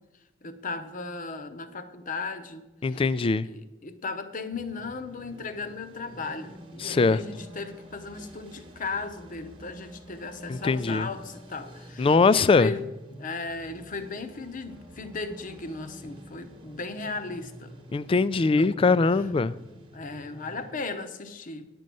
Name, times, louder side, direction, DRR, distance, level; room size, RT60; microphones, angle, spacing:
voice 1, 0.4-3.1 3.4-17.8 18.5-18.9 19.7-21.7, left 3 dB, 45° left, 9 dB, 0.8 m, -36 dB
voice 2, 2.8-3.5 6.8-7.2 10.5-11.1 12.0-12.7 17.9-19.5, left 4 dB, 30° left, 17 dB, 0.3 m, -22 dB
sound 1, 4.5-20.7, equal, 30° right, 1.2 m, -48 dB
9.7 x 5.3 x 7.6 m, 0.99 s
head